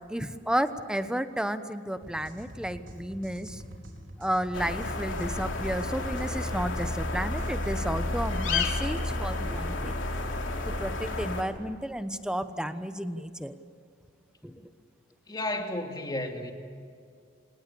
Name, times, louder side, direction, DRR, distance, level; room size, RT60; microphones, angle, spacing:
voice 1, 0.1-3.6 4.2-9.9 10.7-13.5 14.4-14.5, equal, 5° right, 10 dB, 1.1 m, -32 dB
sound 1, 2.0-8.1, equal, 90° right, 4.3 m, -46 dB
sound 2, 4.5-11.4, left 2 dB, 85° left, 2.9 m, -31 dB
voice 2, 15.3-16.5, left 1 dB, 20° left, 3 dB, 2.5 m, -33 dB
27.0 x 19.5 x 7.1 m, 2.3 s
head